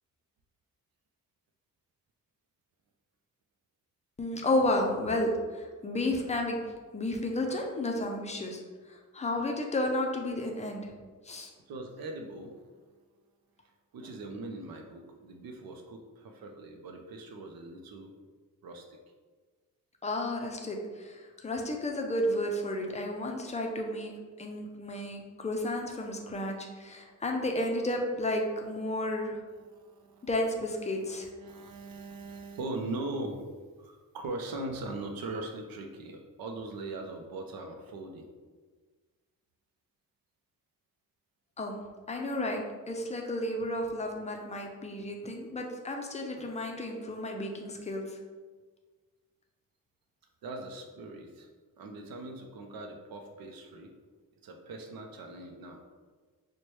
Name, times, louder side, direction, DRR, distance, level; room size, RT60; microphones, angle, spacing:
voice 1, 4.2-6.6 6.9-8.6 8.9-10.9 11.2-11.5 20.0-24.1 24.4-29.4 30.3-31.3 41.6-41.8 42.1-48.2, left 1 dB, 20° left, 2 dB, 0.4 m, -32 dB
voice 2, 11.7-12.6 13.9-18.1 18.6-19.0 27.0-27.2 29.5-30.3 30.9-33.4 33.8-38.3 50.4-51.5 51.8-53.9 54.4-55.8, right 2 dB, 85° right, 4 dB, 0.5 m, -41 dB
4.4 x 2.2 x 3.1 m, 1.4 s
wide cardioid pair, 125°, 34 cm